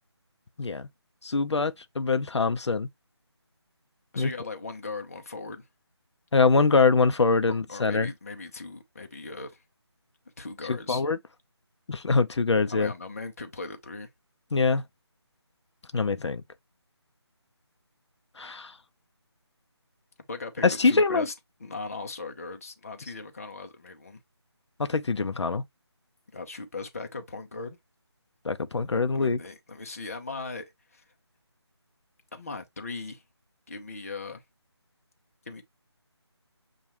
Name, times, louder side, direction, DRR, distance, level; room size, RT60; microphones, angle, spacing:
voice 1, 0.6-0.9 1.2-2.9 4.2-4.3 6.3-8.1 10.7-11.2 11.9-12.9 14.5-14.8 15.9-16.4 18.4-18.7 20.6-21.3 24.8-25.6 28.4-29.4, left 4 dB, 80° left, 0.6 m, -24 dB
voice 2, 4.1-5.7 7.5-9.6 10.4-11.0 12.7-14.1 20.3-21.3 21.6-24.2 26.3-27.8 29.1-31.0 32.3-33.2 33.7-34.4 35.5-35.6, left 3 dB, 30° left, 0.7 m, -38 dB
7.1 x 2.4 x 2.9 m
figure-of-eight pair, 175°, 15 cm